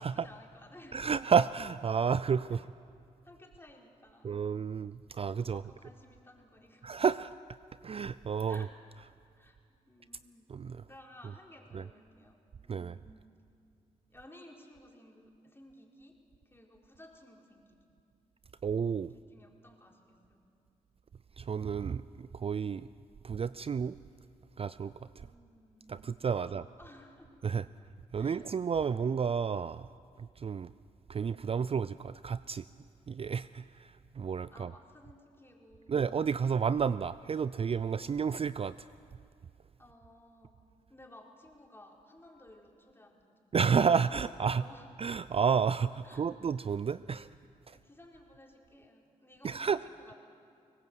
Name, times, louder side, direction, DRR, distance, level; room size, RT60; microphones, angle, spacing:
voice 1, 0.0-1.1 2.5-2.6 3.2-4.5 5.5-7.0 8.5-8.7 9.4-10.5 10.9-12.4 12.6-13.4 14.1-16.2 16.4-17.8 19.3-20.4 25.2-26.1 26.4-27.3 27.7-27.8 28.2-28.5 34.5-36.0 39.8-40.5 40.9-43.3 43.9-44.9 46.0-46.3 47.7-50.1, left 1 dB, 15° left, 0 dB, 4.6 m, -56 dB
voice 2, 0.9-2.7 4.2-5.6 6.8-7.3 7.8-8.7 10.5-10.8 11.7-11.8 12.7-13.0 18.6-19.1 21.4-22.9 23.2-24.0 24.6-25.3 25.9-26.6 27.4-27.7 28.1-29.9 30.4-30.7 31.1-32.6 33.1-34.7 35.9-38.9 43.5-44.6 45.0-47.3 47.7-47.8 49.4-49.8, right 6 dB, 40° right, 16 dB, 0.4 m, -31 dB
21.5 x 19.0 x 8.0 m, 2.5 s
supercardioid pair, 50°, 16 cm